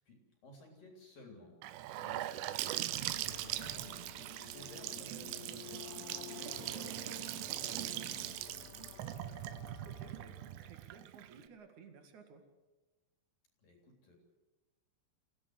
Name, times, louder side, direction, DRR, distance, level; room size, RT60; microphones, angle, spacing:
voice 1, 0.0-8.6 13.6-14.2, left 2 dB, 45° left, 2 dB, 4.8 m, -57 dB
Gurgling / Sink (filling or washing) / Bathtub (filling or washing), 1.6-11.5, right 15 dB, 80° right, 3.4 m, -41 dB
sound 1, 2.9-10.8, left 13 dB, 80° left, 3.3 m, -52 dB
voice 2, 5.1-5.7 9.8-12.4, right 6 dB, 50° right, 6 dB, 2.5 m, -56 dB
26.5 x 16.5 x 8.0 m, 1.1 s
omnidirectional pair, 5.9 m